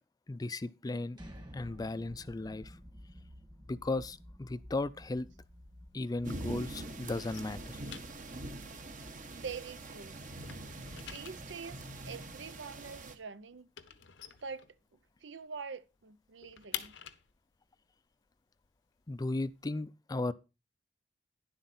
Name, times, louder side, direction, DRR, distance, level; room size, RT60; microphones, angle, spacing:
voice 1, 0.3-1.2 1.5-2.8 3.7-5.3 5.9-7.8 19.1-20.3, left 2 dB, 20° left, 0.4 m, -36 dB
sound 1, 1.1-13.0, equal, 25° right, 1.7 m, -54 dB
sound 2, 5.1-6.4 6.7-9.9 10.2-15.2 15.6-15.7 16.0-19.7, left 10 dB, 80° left, 0.9 m, -48 dB
sound 3, 6.2-13.2, right 2 dB, 45° right, 1.2 m, -44 dB
voice 2, 9.3-10.2 10.9-13.7 14.4-14.8 15.2-16.9, right 5 dB, 80° right, 0.7 m, -45 dB
10.5 x 7.6 x 4.2 m
head